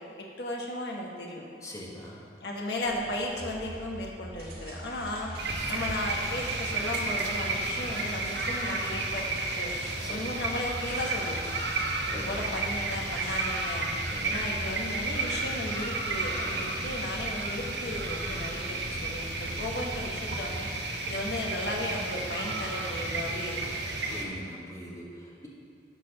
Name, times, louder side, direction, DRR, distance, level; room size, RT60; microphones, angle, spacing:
voice 1, 0.2-1.4 2.4-5.3 5.7-9.3 9.6-9.7 10.1-11.4 12.1-13.9 14.2-20.7 21.1-23.6, left 1 dB, 70° left, -1 dB, 1.2 m, -35 dB
voice 2, 1.6-2.2 10.0-10.3 12.1-12.5 14.1-14.4 16.4-16.8 24.1-25.5, equal, 20° left, -3 dB, 1.3 m, -42 dB
sound 1, 2.8-15.0, right 1 dB, 60° right, 1.9 m, -49 dB
sound 2, 3.4-20.4, equal, 20° right, 0.5 m, -46 dB
sound 3, 5.3-24.2, right 2 dB, 75° right, 0.9 m, -32 dB
10.0 x 4.0 x 6.5 m, 2.5 s
head